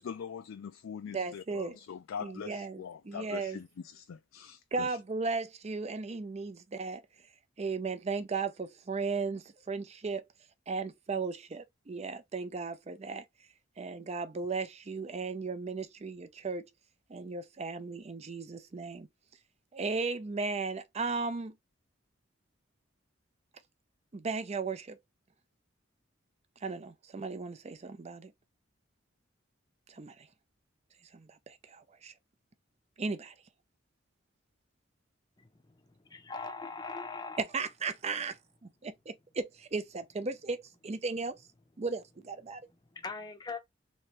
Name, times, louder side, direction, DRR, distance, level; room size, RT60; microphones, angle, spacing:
voice 1, 0.0-5.0, left 7 dB, 85° left, 0.4 m, -43 dB
voice 2, 1.1-1.8 2.2-3.6 4.7-7.0 7.6-10.2 10.7-13.2 13.8-16.6 17.1-19.1 19.7-21.5 24.1-25.0 26.6-28.3 29.9-30.1 31.1-32.1 33.0-33.3 37.5-38.4 38.8-41.4 41.8-42.6, right 4 dB, 35° right, 0.5 m, -36 dB
voice 3, 36.1-37.4 42.9-43.6, left 4 dB, 20° left, 0.6 m, -40 dB
3.3 x 3.1 x 3.0 m
head